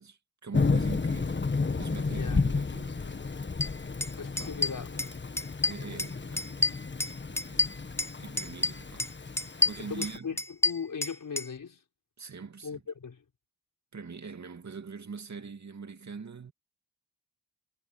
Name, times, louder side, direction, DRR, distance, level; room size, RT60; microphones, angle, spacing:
voice 1, 0.0-1.5 1.8-3.0 4.4-4.6 5.6-6.9 7.3-7.7 8.2-9.1 9.6-10.3 12.2-12.8 13.9-16.5, right 5 dB, 45° right, 2.6 m, -43 dB
Thunder / Rain, 0.5-10.2, left 4 dB, 25° left, 1.5 m, -32 dB
voice 2, 2.1-2.6 3.0-3.3 3.6-3.7 4.2-5.1 9.8-11.8 12.6-13.2, left 6 dB, 50° left, 4.2 m, -39 dB
sound 1, 3.6-3.7 4.0-4.1 4.4-5.1 5.4-6.1 6.4-8.1 8.4-9.1 9.4-11.5, left 2 dB, 5° left, 0.6 m, -28 dB
cardioid pair, 80°, 41 cm